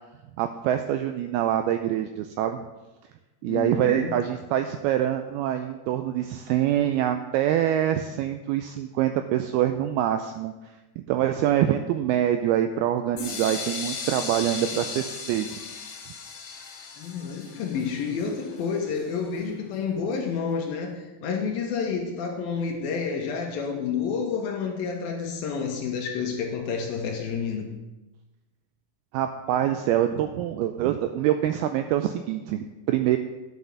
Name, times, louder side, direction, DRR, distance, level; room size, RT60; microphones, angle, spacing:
voice 1, 0.4-2.6 3.4-10.5 11.0-15.5 29.1-33.2, right 11 dB, 85° right, 7 dB, 2.2 m, -25 dB
voice 2, 3.4-4.2 17.0-27.7, left 6 dB, 70° left, 2 dB, 2.6 m, -29 dB
sound 1, 13.2-19.0, left 5 dB, 55° left, 2.7 m, -36 dB
10.5 x 6.3 x 7.0 m, 1.1 s
omnidirectional pair, 4.9 m